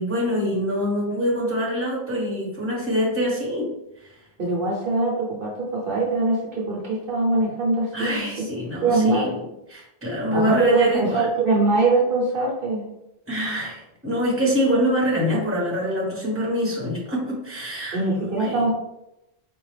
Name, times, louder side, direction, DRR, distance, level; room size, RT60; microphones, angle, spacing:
voice 1, 0.0-3.7 7.9-9.4 9.7-11.3 13.3-18.0 18.4-18.6, equal, 15° right, -4 dB, 1.1 m, -25 dB
voice 2, 4.4-8.5 8.8-9.3 10.3-12.9 17.9-18.7, right 3 dB, 60° right, -3 dB, 1.0 m, -22 dB
4.5 x 2.4 x 3.3 m, 0.87 s
omnidirectional pair, 1.1 m